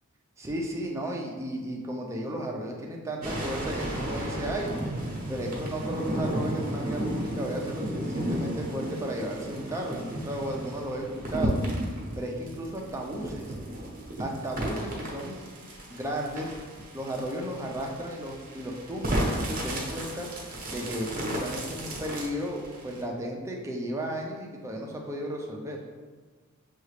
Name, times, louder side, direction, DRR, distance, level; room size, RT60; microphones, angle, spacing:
voice 1, 0.4-4.7 5.3-11.6 12.2-13.5 14.2-15.4 15.9-16.5 16.9-20.3 20.7-25.8, right 1 dB, 15° right, -1 dB, 0.5 m, -34 dB
sound 1, 3.2-23.0, right 1 dB, 40° right, 0.9 m, -33 dB
6.5 x 2.4 x 3.2 m, 1.4 s
head